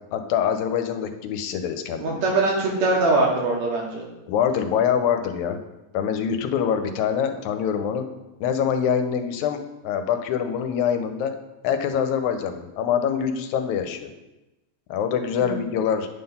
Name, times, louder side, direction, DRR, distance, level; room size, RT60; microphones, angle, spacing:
voice 1, 0.1-2.2 4.3-5.6 5.9-8.1 8.4-11.3 11.6-14.1 14.9-16.1, left 8 dB, 80° left, 7 dB, 2.0 m, -24 dB
voice 2, 2.0-4.0 15.4-15.5, right 2 dB, 70° right, -2 dB, 2.5 m, -22 dB
9.0 x 3.9 x 5.5 m, 0.99 s
omnidirectional pair, 3.4 m